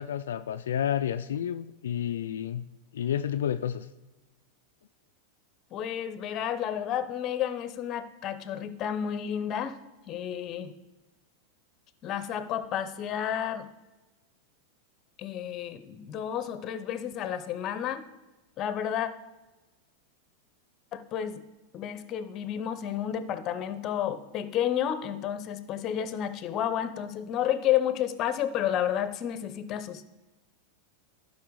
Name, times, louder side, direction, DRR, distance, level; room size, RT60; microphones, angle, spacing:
voice 1, 0.0-2.6 2.9-3.9, left 9 dB, 85° left, 9 dB, 0.3 m, -30 dB
voice 2, 5.7-9.8 10.1-10.7 12.0-13.7 15.2-18.0 18.6-19.1 20.9-21.4 21.7-30.0, left 10 dB, 40° left, 13 dB, 0.8 m, -31 dB
11.5 x 5.5 x 4.7 m, 1.1 s
hypercardioid pair, 110°, 0 cm